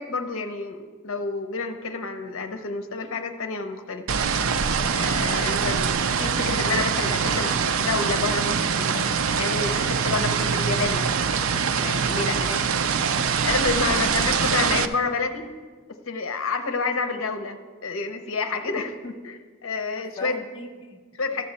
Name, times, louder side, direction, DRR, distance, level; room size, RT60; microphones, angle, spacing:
voice 1, 0.0-4.0 4.9-5.9 6.2-9.1 9.4-11.1 11.7-12.5 13.4-15.5 16.1-20.4 21.2-21.5, left 4 dB, 70° left, 7 dB, 0.8 m, -29 dB
sound 1, 4.1-14.9, right 6 dB, 70° right, 0.5 m, -24 dB
voice 2, 12.3-13.1 13.7-14.2 19.9-21.0, left 2 dB, 25° left, 1 dB, 0.6 m, -40 dB
13.0 x 7.7 x 4.1 m, 1.5 s
head